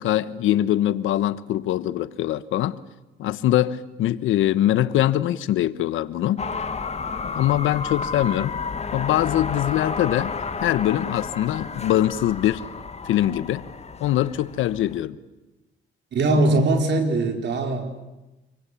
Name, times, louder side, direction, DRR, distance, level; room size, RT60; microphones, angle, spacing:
voice 1, 0.0-2.8 3.2-6.5 7.2-8.6 8.9-12.6 13.0-13.6 14.0-15.2 16.5-16.6, left 13 dB, 85° left, 1.2 m, -23 dB
sound 1, 6.4-15.0, left 5 dB, 35° left, 1.9 m, -31 dB
voice 2, 16.1-18.0, right 2 dB, 60° right, 4.9 m, -21 dB
28.0 x 23.0 x 8.5 m
cardioid pair, 90°, 20 cm